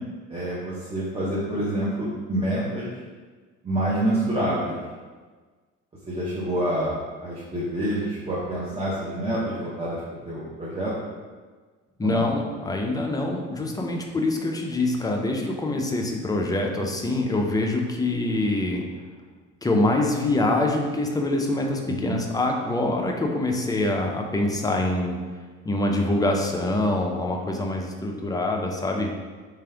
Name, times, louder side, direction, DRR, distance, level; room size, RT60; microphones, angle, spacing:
voice 1, 0.3-2.9 3.6-4.8 6.1-6.9 7.2-10.0 10.2-10.9 12.0-12.2 22.0-22.1, right 1 dB, 15° right, -8 dB, 0.9 m, -27 dB
voice 2, 12.0-18.9 19.6-25.2 25.6-29.1, left 2 dB, 10° left, 1 dB, 0.5 m, -25 dB
3.5 x 3.3 x 3.4 m, 1.4 s
figure-of-eight pair, 65°, 38 cm